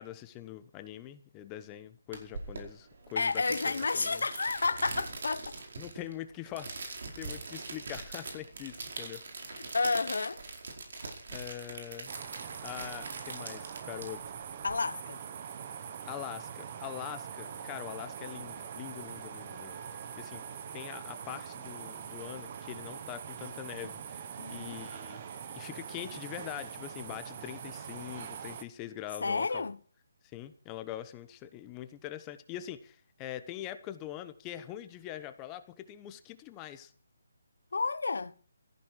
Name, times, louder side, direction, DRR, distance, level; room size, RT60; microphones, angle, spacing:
voice 1, 0.0-4.2 5.8-9.2 11.3-12.1 12.6-14.2 16.0-20.4 20.7-25.2 25.5-29.7 30.3-36.9, left 12 dB, 15° left, 1.0 m, -43 dB
sound 1, 2.1-14.7, right 3 dB, 60° right, 4.9 m, -42 dB
voice 2, 3.2-5.6 9.5-10.4 14.6-15.2 24.4-24.8 29.2-29.8 37.7-38.3, left 4 dB, 80° left, 1.2 m, -31 dB
sound 2, 12.1-28.6, right 8 dB, 35° right, 1.3 m, -43 dB
16.5 x 14.5 x 4.7 m
hypercardioid pair, 165°, 0 cm